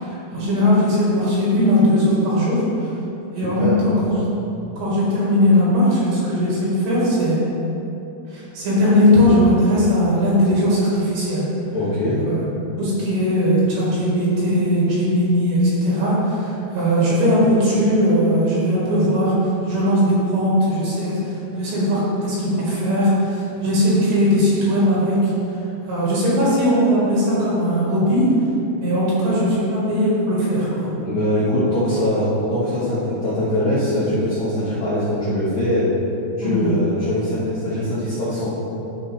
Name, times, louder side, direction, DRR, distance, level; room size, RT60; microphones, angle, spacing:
voice 1, 0.0-2.6 3.4-4.2 4.8-7.4 8.3-11.5 12.3-12.5 12.8-19.3 19.7-21.2 21.5-25.3 25.9-28.2 28.8-30.9 36.4-36.8, equal, 65° right, -7 dB, 3.7 m, -19 dB
voice 2, 3.4-4.0 11.7-12.2 31.0-35.9 36.4-38.5, left 1 dB, 65° left, -12 dB, 1.8 m, -22 dB
12.0 x 5.2 x 3.4 m, 2.9 s
omnidirectional pair, 5.8 m